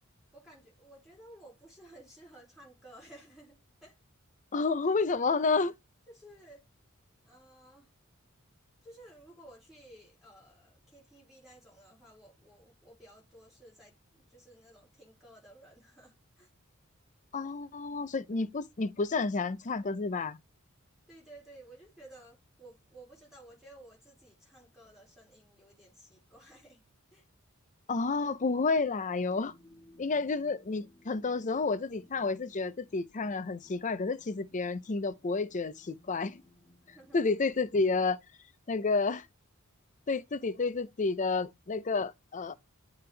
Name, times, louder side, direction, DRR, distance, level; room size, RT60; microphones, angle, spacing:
voice 1, 0.3-3.6 3.8-4.0 6.1-6.6 7.2-7.9 8.8-16.5 21.1-26.8 27.1-27.2 36.9-37.4, right 1 dB, ahead, 4.5 m, -55 dB
voice 2, 4.5-5.7 17.3-20.4 27.9-29.5 30.0-36.4 37.1-38.2 38.7-39.3 40.1-42.5, left 4 dB, 35° left, 0.5 m, -30 dB
sound 1, 29.2-38.0, left 1 dB, 15° left, 3.7 m, -62 dB
8.8 x 3.4 x 3.3 m
head